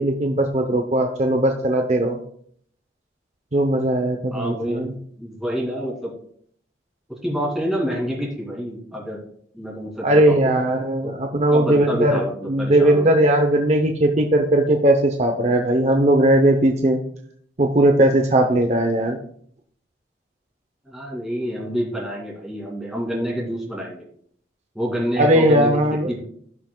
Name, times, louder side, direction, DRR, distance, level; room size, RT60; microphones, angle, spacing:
voice 1, 0.0-2.2 3.5-4.9 10.0-12.2 12.5-17.0 17.6-19.2 25.2-26.1, right 1 dB, 40° right, 4 dB, 0.7 m, -18 dB
voice 2, 4.3-4.8 5.2-6.1 7.1-9.2 9.5-10.6 11.0-13.1 20.8-24.0 24.7-26.2, equal, ahead, -3 dB, 2.5 m, -28 dB
16.5 x 5.9 x 2.3 m, 0.63 s
head